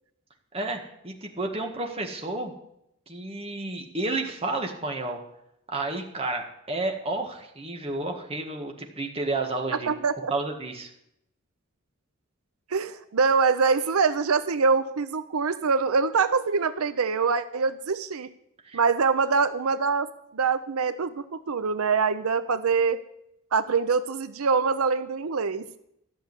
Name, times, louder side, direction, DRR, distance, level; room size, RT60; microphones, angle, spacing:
voice 1, 0.5-2.5 3.1-5.2 5.7-9.9 10.3-10.9 18.6-18.8, right 2 dB, 25° right, 2 dB, 1.8 m, -31 dB
voice 2, 9.9-10.3 12.7-18.3 18.7-20.1 20.3-23.0 23.5-25.8, right 5 dB, 85° right, 12 dB, 0.7 m, -24 dB
13.5 x 6.6 x 9.7 m, 0.78 s
head